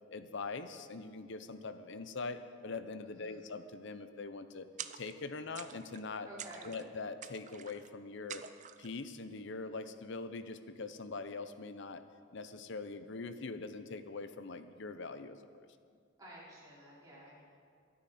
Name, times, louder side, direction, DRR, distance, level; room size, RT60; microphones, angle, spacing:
voice 1, 0.1-4.7 4.9-6.3 6.7-8.4 8.8-12.0 12.3-15.7, left 3 dB, 60° left, 10 dB, 0.7 m, -43 dB
voice 2, 3.0-3.4 6.2-6.8 15.9-17.4, right 1 dB, 20° right, -8 dB, 4.6 m, -53 dB
sound 1, 4.8-5.3 5.5-6.1 6.4-6.9 7.2-7.9 8.3-8.9, right 9 dB, 35° right, 0.5 m, -47 dB
23.0 x 9.4 x 4.3 m, 2.2 s
head